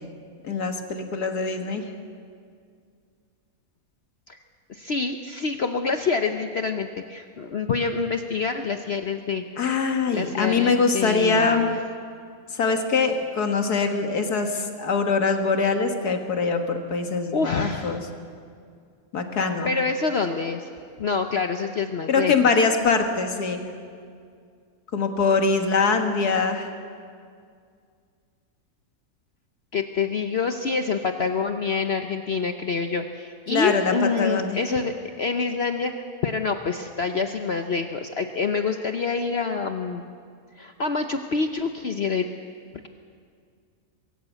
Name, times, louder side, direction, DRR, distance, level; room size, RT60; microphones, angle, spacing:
voice 1, 0.4-1.8 9.6-11.7 12.5-18.0 19.1-19.7 22.1-23.6 24.9-26.7 33.5-34.6, left 4 dB, 85° left, 4 dB, 2.2 m, -23 dB
voice 2, 4.7-9.4 10.1-11.7 17.3-18.0 19.6-20.7 21.0-22.3 29.7-40.0 40.5-42.3 42.7-42.9, left 5 dB, 50° left, 6 dB, 0.9 m, -26 dB
23.5 x 14.0 x 8.2 m, 2.2 s
omnidirectional pair, 1.6 m